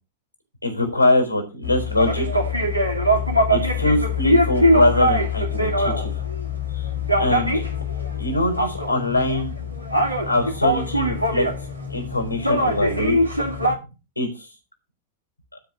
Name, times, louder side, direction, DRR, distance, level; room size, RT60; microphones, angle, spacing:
voice 1, 0.6-2.4 3.5-6.1 6.7-6.9 7.2-7.6 8.2-9.5 10.2-11.5 11.9-13.2 14.2-14.5, left 2 dB, 90° left, 5 dB, 3.9 m, -23 dB
sound 1, 1.6-13.7, left 1 dB, 85° right, 2.4 m, -22 dB
12.5 x 5.2 x 6.0 m, 0.29 s
figure-of-eight pair, 90°, 0 cm